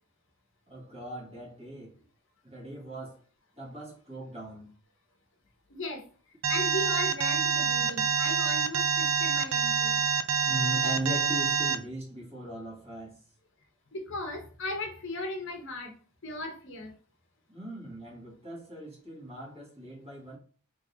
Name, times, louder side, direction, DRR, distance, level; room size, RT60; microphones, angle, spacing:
voice 1, 0.7-2.0 2.4-3.2 3.6-4.7 10.4-13.2 17.5-20.4, right 1 dB, 30° right, 1.6 m, -39 dB
voice 2, 5.7-6.1 6.5-10.0 13.9-15.9 16.2-16.9, left 1 dB, 60° left, 1.0 m, -37 dB
Alarm, 6.4-11.8, right 6 dB, 80° right, 0.5 m, -26 dB
3.6 x 3.3 x 2.7 m
head